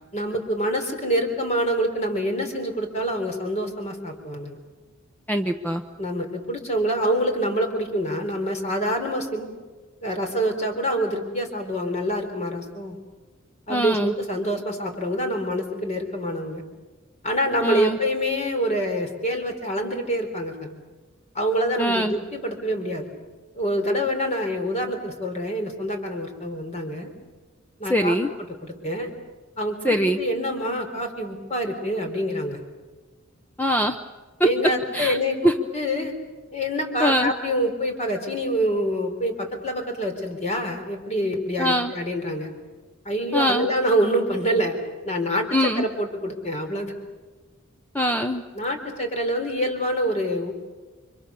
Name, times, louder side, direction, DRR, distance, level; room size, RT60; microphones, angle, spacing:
voice 1, 0.1-4.6 6.0-9.5 10.0-13.0 13.7-16.6 17.2-20.8 21.3-23.1 23.6-27.1 27.8-28.2 28.6-29.1 29.6-32.6 34.4-36.2 36.5-42.5 43.1-44.8 45.0-46.9 48.6-50.5, equal, 35° left, 5 dB, 3.9 m, -26 dB
voice 2, 5.3-5.8 13.7-14.1 17.6-18.0 21.8-22.2 27.9-28.3 29.8-30.2 33.6-34.0 34.4-34.5 34.9-35.2 35.4-35.5 37.0-37.3 41.6-41.9 43.3-43.7 45.5-45.9 47.9-48.4, equal, 10° left, 6 dB, 0.8 m, -22 dB
29.5 x 25.0 x 7.0 m, 1.3 s
head